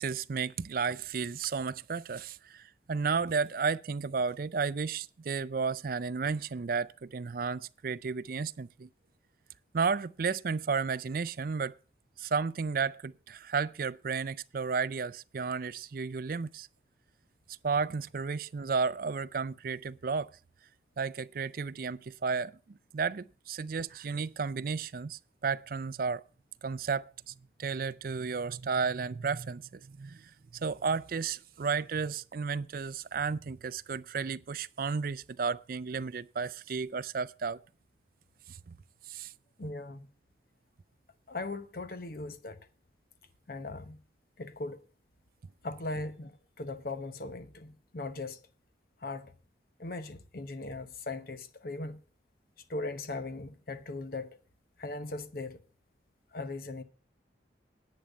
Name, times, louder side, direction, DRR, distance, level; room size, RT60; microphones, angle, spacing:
voice 1, 0.0-8.9 9.7-11.7 12.2-16.7 17.6-20.3 21.0-26.2 26.6-37.6 38.5-38.6 39.1-39.3, right 5 dB, 50° right, 0.4 m, -33 dB
voice 2, 39.6-40.1 41.3-42.6 43.5-44.0 44.4-44.8 45.6-48.5 49.0-49.3 49.8-52.0 52.7-54.4 54.8-55.6 56.3-56.8, left 2 dB, 55° left, 0.9 m, -39 dB
10.5 x 8.8 x 5.2 m
head